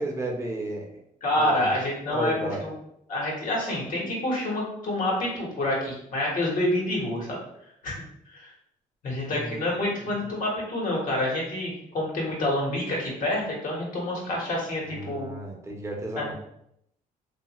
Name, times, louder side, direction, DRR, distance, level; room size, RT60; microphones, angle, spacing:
voice 1, 0.0-1.0 1.3-1.8 2.1-2.6 9.3-9.7 14.9-16.3, right 2 dB, 20° right, 0 dB, 0.7 m, -33 dB
voice 2, 1.2-2.7 3.1-7.4 7.8-7.9 8.3-8.5 9.0-15.3 16.2-16.3, left 1 dB, 60° left, -3 dB, 1.2 m, -27 dB
2.6 x 2.4 x 3.0 m, 0.75 s
cardioid pair, 85°, 16 cm